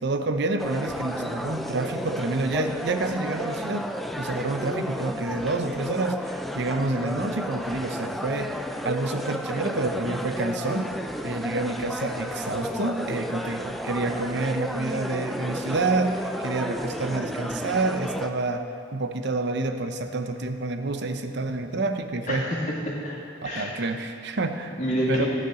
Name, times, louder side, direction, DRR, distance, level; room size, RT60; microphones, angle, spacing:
voice 1, 0.0-3.9 4.2-8.5 8.8-10.9 11.2-18.7 18.9-22.5 23.4-24.8 25.1-25.3, right 3 dB, 60° right, 7 dB, 0.7 m, -28 dB
sound 1, 0.6-18.3, equal, ahead, 0.4 m, -32 dB
voice 2, 22.3-23.8 24.7-25.3, equal, 40° left, -5 dB, 2.4 m, -29 dB
15.5 x 9.8 x 3.8 m, 2.5 s
head